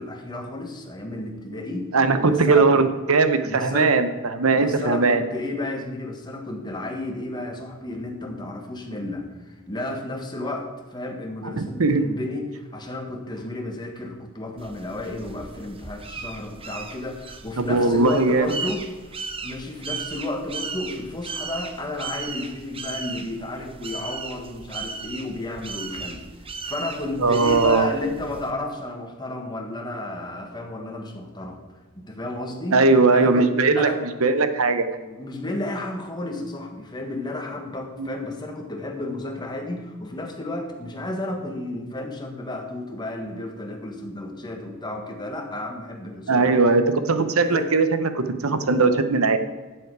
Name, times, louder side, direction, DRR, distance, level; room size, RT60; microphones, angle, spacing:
voice 1, 0.0-1.9 2.2-2.7 3.4-3.9 4.5-18.8 19.4-26.2 26.6-31.6 31.9-32.8 33.1-34.0 35.0-46.5 47.4-47.7, left 2 dB, 20° left, 2 dB, 1.6 m, -32 dB
voice 2, 1.9-5.2 11.6-12.0 17.6-18.5 27.2-27.9 32.7-33.9 34.2-34.9 38.0-38.1 46.3-49.4, right 3 dB, 75° right, 10 dB, 0.9 m, -19 dB
sound 1, 14.6-28.5, right 4 dB, 25° right, 0.8 m, -36 dB
12.5 x 7.7 x 4.7 m, 1.3 s
head